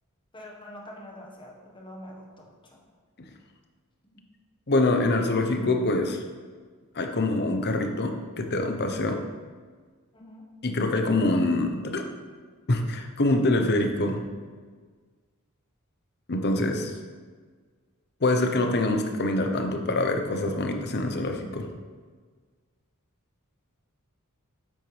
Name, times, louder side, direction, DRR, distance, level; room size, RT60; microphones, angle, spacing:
voice 1, 0.3-2.8 10.1-10.5, left 1 dB, 20° left, -1 dB, 1.4 m, -45 dB
voice 2, 4.7-6.2 6.9-9.2 10.6-12.1 12.7-14.2 16.3-16.9 18.2-21.7, left 2 dB, 50° left, 5 dB, 0.9 m, -25 dB
9.1 x 7.6 x 3.4 m, 1.5 s
head